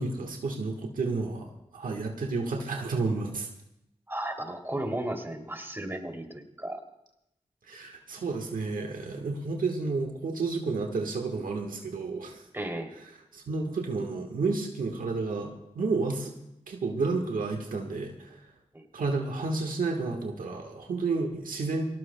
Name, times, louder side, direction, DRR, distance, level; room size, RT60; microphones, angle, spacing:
voice 1, 0.0-3.5 7.7-12.4 13.3-16.3 16.7-18.4 18.9-21.9, right 3 dB, 85° right, 2 dB, 1.3 m, -31 dB
voice 2, 4.1-6.8 12.5-12.9 18.7-18.8, right 1 dB, 15° right, 3 dB, 2.8 m, -34 dB
23.0 x 18.0 x 2.2 m, 0.85 s
cardioid pair, 40°, 14 cm